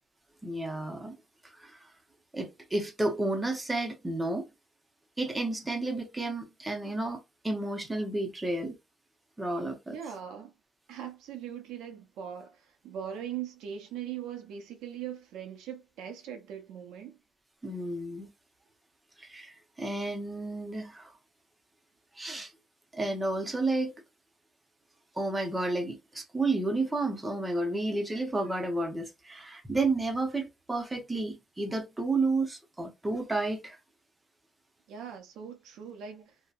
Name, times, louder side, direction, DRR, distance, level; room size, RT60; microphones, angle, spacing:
voice 1, 0.4-1.2 1.4-1.9 2.3-4.5 5.2-8.8 9.4-10.0 17.6-18.3 19.2-21.1 22.2-22.5 22.9-23.9 25.2-33.8, right 2 dB, 10° right, 0.7 m, -31 dB
voice 2, 9.9-10.5 10.9-17.2 34.9-36.3, right 9 dB, 90° right, 0.6 m, -40 dB
2.7 x 2.1 x 2.3 m
cardioid pair, 125°, 0 cm